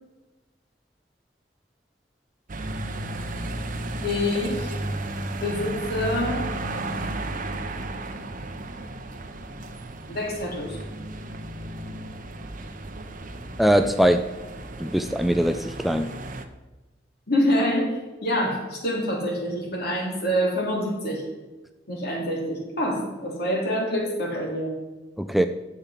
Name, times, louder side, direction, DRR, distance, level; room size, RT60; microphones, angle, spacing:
sound 1, 2.5-16.5, right 2 dB, 50° right, 0.8 m, -34 dB
voice 1, 4.0-4.7 5.4-6.4 10.1-10.8 17.3-21.2 21.9-24.7, equal, 60° left, -2 dB, 3.4 m, -26 dB
voice 2, 13.6-14.2 14.8-16.1 25.2-25.4, equal, ahead, 8 dB, 0.3 m, -21 dB
10.5 x 7.3 x 5.7 m, 1.1 s
head